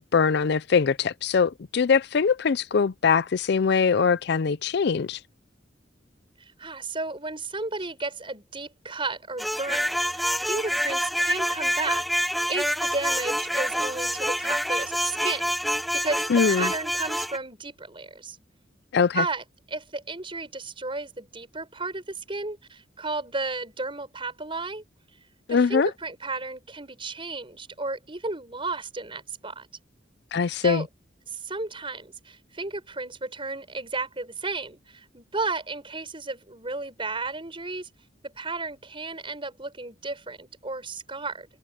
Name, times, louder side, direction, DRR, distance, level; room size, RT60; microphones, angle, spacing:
voice 1, 0.0-5.2 16.3-16.7 18.9-19.2 25.5-25.9 30.3-30.8, left 5 dB, 60° left, 0.5 m, -22 dB
voice 2, 6.6-15.6 15.9-18.4 18.9-24.8 25.5-29.7 30.6-30.9 31.3-37.9 38.2-41.5, right 3 dB, 30° right, 6.4 m, -33 dB
sound 1, 9.4-17.4, equal, ahead, 0.8 m, -27 dB
head